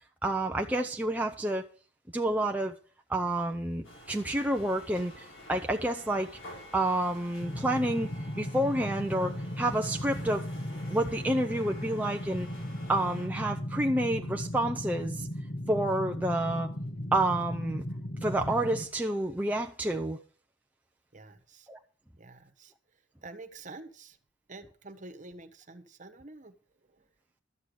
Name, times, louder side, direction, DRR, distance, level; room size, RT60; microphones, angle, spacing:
voice 1, 0.2-1.7 2.1-2.7 3.1-6.3 6.7-8.1 8.4-10.4 10.9-12.5 12.9-15.3 15.7-16.7 17.1-17.8 18.2-20.2 21.7-21.8, right 1 dB, 10° right, 0.6 m, -29 dB
sound 1, 3.8-13.3, left 1 dB, 85° left, 5.5 m, -49 dB
sound 2, 7.4-18.9, equal, 45° left, 1.2 m, -37 dB
voice 2, 21.1-21.7 22.2-22.7 23.2-24.2 24.5-26.5 26.8-27.1, right 2 dB, 40° right, 1.4 m, -48 dB
12.5 x 8.0 x 6.7 m
head